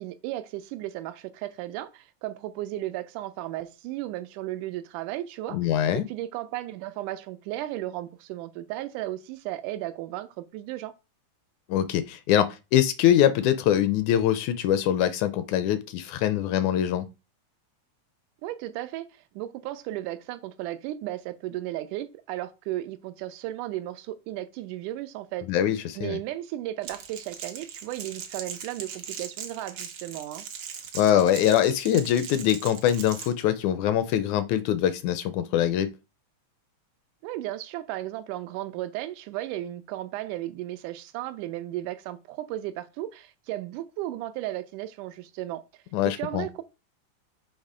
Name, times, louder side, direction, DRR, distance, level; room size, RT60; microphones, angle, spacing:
voice 1, 0.0-10.9 18.4-25.5 26.0-30.5 37.2-45.6 46.0-46.6, right 14 dB, 85° right, 2.0 m, -35 dB
voice 2, 5.5-6.0 11.7-17.1 25.5-26.2 31.0-35.9 45.9-46.5, left 10 dB, 80° left, 1.8 m, -23 dB
Crackle, 26.8-33.3, right 7 dB, 65° right, 1.4 m, -40 dB
6.6 x 3.1 x 4.8 m
omnidirectional pair, 3.6 m